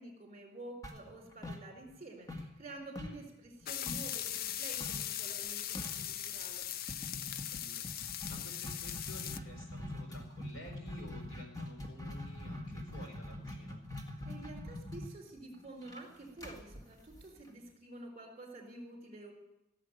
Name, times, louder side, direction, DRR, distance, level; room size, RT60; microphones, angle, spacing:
voice 1, 0.0-6.6 14.2-19.3, right 2 dB, 30° right, 1 dB, 4.3 m, -49 dB
sound 1, 0.8-2.0 2.3-4.2 4.8-5.1 5.4-5.5 5.7-6.1 6.9-17.7, left 1 dB, 20° left, 1.8 m, -44 dB
sound 2, 3.6-9.4, left 11 dB, 45° left, 0.4 m, -39 dB
voice 2, 7.3-13.8, left 1 dB, 70° left, 3 dB, 4.5 m, -52 dB
16.5 x 7.5 x 9.3 m, 0.90 s
head